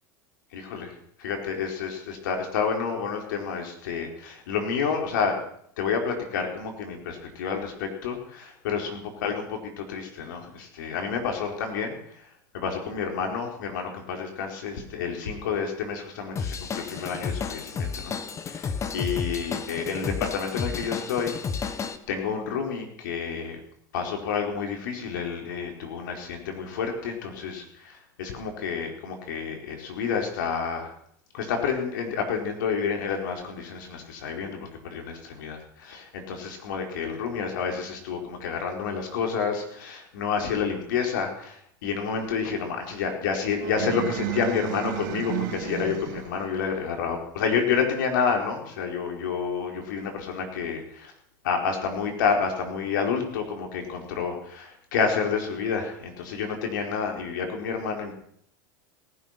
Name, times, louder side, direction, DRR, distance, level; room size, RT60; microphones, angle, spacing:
voice 1, 0.5-5.4 5.8-12.3 12.5-18.2 18.4-23.6 23.9-30.9 31.3-51.1 51.4-58.1, left 6 dB, 75° left, 3 dB, 4.4 m, -29 dB
Drum kit / Drum, 16.4-22.0, left 5 dB, 30° left, 1.4 m, -32 dB
sound 1, 43.6-46.5, right 12 dB, 70° right, 2.8 m, -32 dB
18.0 x 12.0 x 5.9 m, 0.66 s
hypercardioid pair, 100°, 10 cm